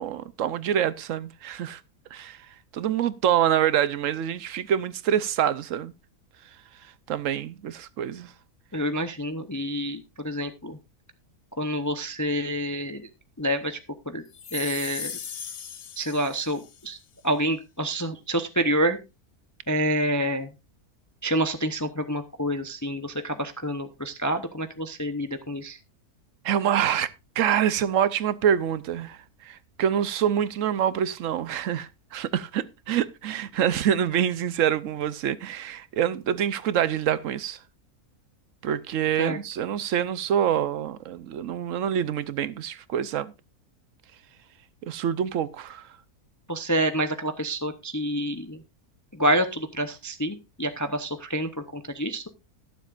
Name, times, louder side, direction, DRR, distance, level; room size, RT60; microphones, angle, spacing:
voice 1, 0.0-1.8 2.1-2.4 2.7-5.9 7.1-8.3 26.4-37.6 38.6-43.3 44.9-45.9, right 9 dB, 65° right, 1.0 m, -26 dB
voice 2, 8.7-10.8 11.6-13.1 13.4-13.8 14.1-14.2 14.5-15.2 16.0-17.0 17.2-19.0 19.7-20.5 21.2-25.8 39.2-39.4 46.5-48.6 49.1-52.2, right 1 dB, 20° left, 0.5 m, -28 dB
sound 1, 14.3-16.9, left 8 dB, 65° left, 1.3 m, -38 dB
20.5 x 7.4 x 2.5 m
omnidirectional pair, 1.6 m